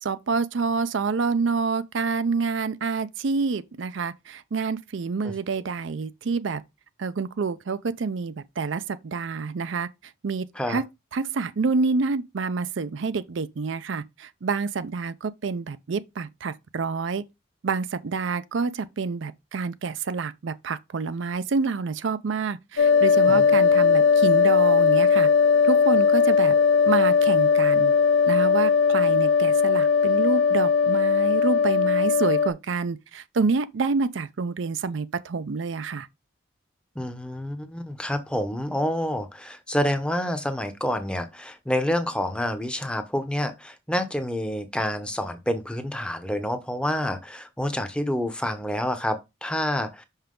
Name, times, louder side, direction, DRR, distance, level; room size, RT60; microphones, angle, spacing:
voice 1, 0.0-6.6 7.0-10.8 11.1-17.2 17.6-25.3 25.6-26.5 26.9-27.9 28.3-36.1, right 4 dB, 70° right, 0.5 m, -28 dB
sound 1, 22.8-32.5, left 6 dB, 85° left, 0.8 m, -19 dB
voice 2, 37.0-50.0, left 1 dB, 5° left, 0.7 m, -28 dB
5.7 x 5.6 x 3.7 m
head